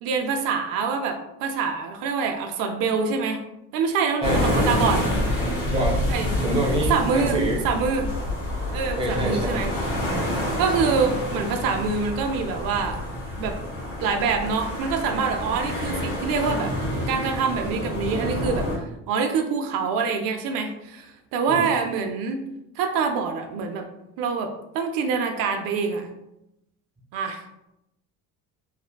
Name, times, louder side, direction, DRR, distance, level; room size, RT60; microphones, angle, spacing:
voice 1, 0.0-3.4 3.7-5.0 6.1-6.3 6.8-7.4 7.6-8.0 8.7-9.7 10.2-13.0 13.4-13.5 14.0-16.7 17.1-18.7 19.1-22.4 22.8-23.8 24.2-24.5 24.7-26.1 27.1-27.4, right 5 dB, 80° right, 4 dB, 0.5 m, -25 dB
sound 1, 4.2-18.8, left 1 dB, 65° left, 1.5 m, -27 dB
voice 2, 4.2-4.7 5.5-6.0 6.4-7.6 9.0-9.5 9.9-10.0 21.5-21.7, right 1 dB, 15° right, -2 dB, 0.6 m, -26 dB
3.4 x 2.1 x 2.2 m, 0.85 s
cardioid pair, 135°, 34 cm